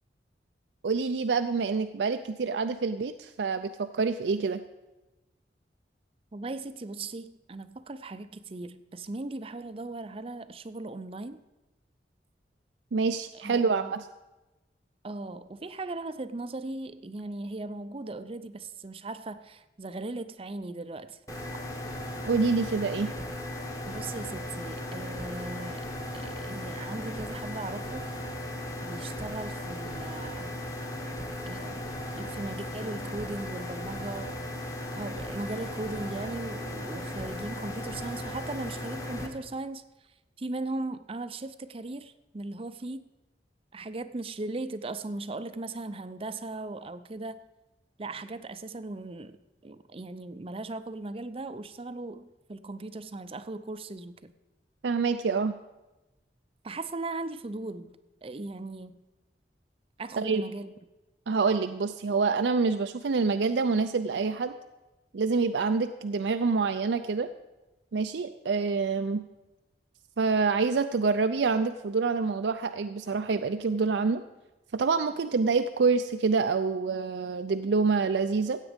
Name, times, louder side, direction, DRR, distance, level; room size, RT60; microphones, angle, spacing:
voice 1, 0.8-4.6 12.9-14.1 22.3-23.1 54.8-55.5 60.2-60.4 61.3-64.5 65.1-67.3 67.9-69.2 70.2-74.2 74.7-78.6, right 4 dB, 80° right, 8 dB, 0.5 m, -26 dB
voice 2, 6.3-11.4 13.3-13.9 15.0-21.2 23.9-25.9 26.1-28.1 28.8-30.6 31.4-34.4 34.9-39.8 40.4-43.1 43.7-47.4 48.0-49.4 49.6-54.3 56.6-57.9 58.2-59.0 60.0-60.7, right 2 dB, 30° right, 12 dB, 0.5 m, -38 dB
sound 1, 21.3-39.3, left 1 dB, 20° left, 1.4 m, -37 dB
15.5 x 8.3 x 5.1 m, 1.1 s
head